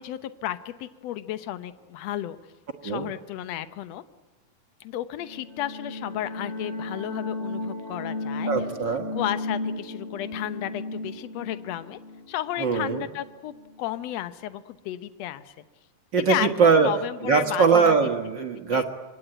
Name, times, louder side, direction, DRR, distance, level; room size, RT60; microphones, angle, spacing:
voice 1, 0.0-2.4 2.8-4.0 4.8-8.5 9.1-12.0 12.3-15.5 16.2-18.1 18.7-18.8, left 13 dB, 65° left, 12 dB, 1.8 m, -33 dB
sound 1, 5.2-13.8, left 2 dB, 20° left, 3.1 m, -35 dB
voice 2, 8.5-9.1 12.6-13.0 16.1-16.9 17.2-18.8, right 5 dB, 50° right, 4 dB, 1.4 m, -21 dB
26.0 x 22.5 x 9.1 m, 1.2 s
omnidirectional pair, 4.0 m